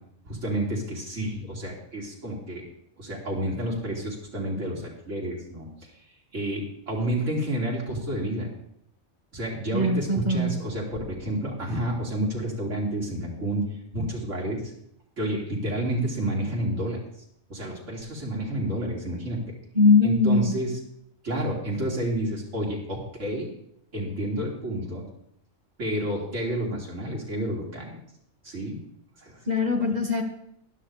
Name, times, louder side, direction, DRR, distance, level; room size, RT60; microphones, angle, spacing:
voice 1, 0.2-2.6 3.0-5.7 6.3-8.5 9.3-10.9 11.2-13.7 13.9-14.7 15.2-17.0 17.5-19.4 20.0-20.8 21.2-23.5 23.9-25.0 25.8-28.0 28.4-28.8 29.2-29.4, right 1 dB, 85° right, -3 dB, 3.0 m, -30 dB
voice 2, 9.7-10.5 19.7-20.5 29.5-30.2, left 3 dB, 35° right, 2 dB, 1.6 m, -21 dB
15.0 x 11.0 x 3.3 m, 0.73 s
omnidirectional pair, 1.3 m